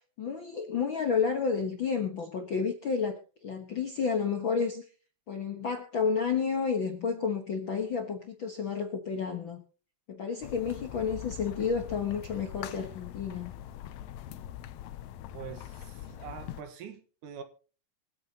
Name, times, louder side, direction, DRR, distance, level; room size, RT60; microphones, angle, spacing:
voice 1, 0.0-4.8 5.3-9.6 10.1-13.5, left 6 dB, 55° left, 1.3 m, -31 dB
sound 1, 10.4-16.6, left 12 dB, 80° left, 1.6 m, -43 dB
voice 2, 15.3-17.4, right 8 dB, 70° right, 2.8 m, -44 dB
25.5 x 8.7 x 2.9 m
omnidirectional pair, 3.9 m